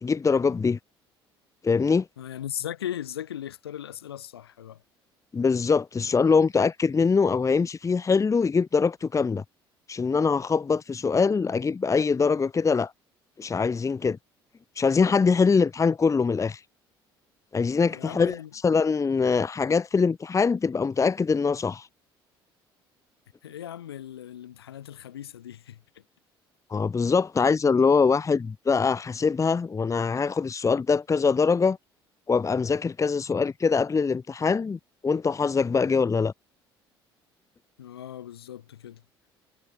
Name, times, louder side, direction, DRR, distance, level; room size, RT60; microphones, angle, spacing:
voice 1, 0.0-0.8 1.6-2.1 5.3-9.4 9.9-12.9 13.4-14.2 14.8-16.6 17.5-21.9 26.7-31.8 32.3-36.3, left 5 dB, 25° left, 1.1 m, -23 dB
voice 2, 2.2-4.8 17.9-18.5 23.4-25.8 37.8-39.0, left 10 dB, 80° left, 4.7 m, -38 dB
figure-of-eight pair, 55°, 13 cm